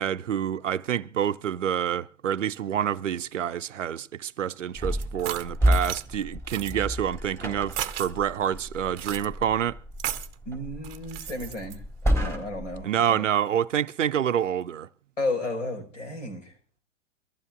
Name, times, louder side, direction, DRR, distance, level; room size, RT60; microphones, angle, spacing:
voice 1, 0.0-9.8 12.8-14.9, right 9 dB, 80° right, 0.6 m, -27 dB
sound 1, 4.7-12.8, equal, 5° left, 3.6 m, -30 dB
sound 2, 5.0-6.0 6.5-6.7 7.7-8.1 9.0-9.3 10.0-10.3 10.8-11.8, right 13 dB, 35° right, 0.8 m, -34 dB
voice 2, 10.5-11.8 12.2-13.2 15.2-16.5, left 2 dB, 80° left, 5.0 m, -33 dB
23.5 x 14.5 x 2.4 m
figure-of-eight pair, 110°, 37 cm